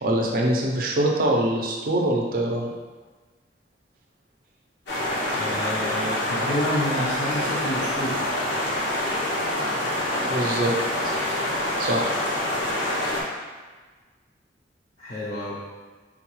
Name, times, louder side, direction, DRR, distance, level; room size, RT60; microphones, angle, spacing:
voice 1, 0.0-2.7 10.0-10.7 11.8-12.1, right 1 dB, 55° right, -1 dB, 0.5 m, -24 dB
sound 1, 4.9-13.2, left 1 dB, 85° left, 0.8 m, -26 dB
voice 2, 5.3-8.3 15.0-15.7, left 1 dB, 40° left, -8 dB, 0.4 m, -29 dB
3.8 x 2.2 x 3.0 m, 1.4 s
head